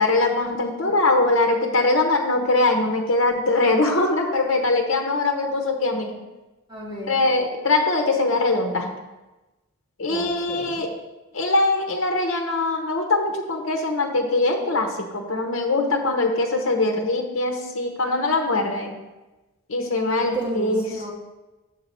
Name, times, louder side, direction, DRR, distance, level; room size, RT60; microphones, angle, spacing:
voice 1, 0.0-6.2 7.1-8.9 10.0-10.9 11.3-18.9 19.7-20.8, left 2 dB, 65° left, 2 dB, 0.9 m, -22 dB
voice 2, 6.7-7.2 10.1-10.8 20.1-21.1, right 1 dB, 20° right, -4 dB, 1.6 m, -32 dB
6.8 x 6.7 x 4.3 m, 1.1 s
head